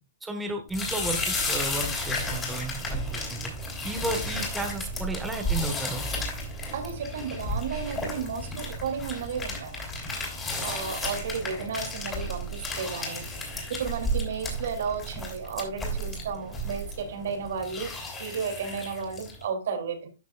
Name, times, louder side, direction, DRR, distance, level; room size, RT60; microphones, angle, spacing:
voice 1, 0.2-3.5 3.8-6.0, right 2 dB, 10° right, 4 dB, 1.2 m, -33 dB
sound 1, 0.7-19.4, left 1 dB, 15° left, 3.4 m, -33 dB
voice 2, 6.7-9.8 10.6-13.2 13.7-20.1, right 6 dB, 70° right, 5 dB, 2.7 m, -33 dB
12.5 x 6.1 x 2.4 m, 0.28 s
hypercardioid pair, 145°, 0 cm